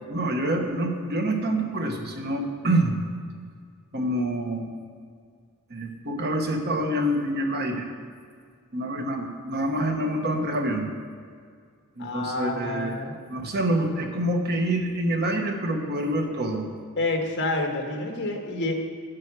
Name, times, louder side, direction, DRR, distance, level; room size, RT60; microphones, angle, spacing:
voice 1, 0.1-3.0 3.9-4.7 5.7-7.9 8.7-10.9 12.0-16.7, right 1 dB, 50° right, 3 dB, 1.2 m, -26 dB
voice 2, 12.0-13.1 17.0-18.7, left 2 dB, 55° left, 3 dB, 1.3 m, -28 dB
9.3 x 7.8 x 6.1 m, 2.1 s
head